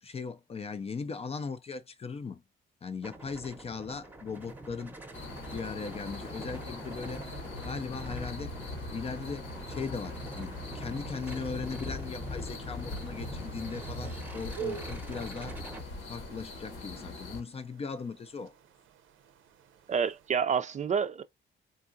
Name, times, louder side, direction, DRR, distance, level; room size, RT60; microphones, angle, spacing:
voice 1, 0.0-2.4 2.8-5.0 5.5-7.2 7.6-8.6 8.9-15.6 16.0-18.5, left 5 dB, 30° left, 0.4 m, -38 dB
sound 1, 3.0-15.8, right 1 dB, 10° right, 0.8 m, -44 dB
sound 2, 5.1-17.4, left 2 dB, 75° left, 1.1 m, -41 dB
sound 3, 10.5-20.3, right 10 dB, 80° right, 0.6 m, -49 dB
voice 2, 19.9-21.2, right 6 dB, 35° right, 0.4 m, -28 dB
3.7 x 2.3 x 2.5 m
cardioid pair, 90°, 20 cm